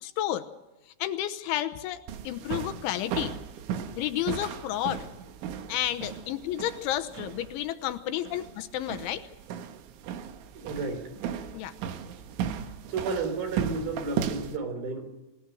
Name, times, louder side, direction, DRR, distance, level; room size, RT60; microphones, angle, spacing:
voice 1, 0.0-0.5 1.0-3.3 4.0-5.1 5.7-9.3 11.5-11.7, left 13 dB, 80° left, 8 dB, 3.3 m, -31 dB
sound 1, 2.1-14.6, right 8 dB, 75° right, 3.7 m, -36 dB
voice 2, 10.5-11.1 12.6-15.1, right 4 dB, 50° right, 8 dB, 5.0 m, -33 dB
27.5 x 18.5 x 6.4 m, 1.0 s
omnidirectional pair, 5.6 m